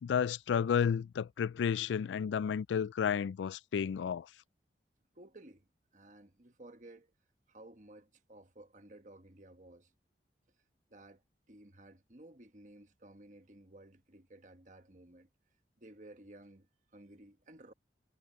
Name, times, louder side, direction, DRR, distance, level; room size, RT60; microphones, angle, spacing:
voice 1, 0.0-4.3, left 7 dB, 90° left, 0.3 m, -32 dB
voice 2, 5.1-5.7 5.9-7.1 7.5-9.9 10.9-11.2 11.5-15.3 15.8-16.7 16.9-17.7, right 1 dB, 45° right, 1.3 m, -55 dB
head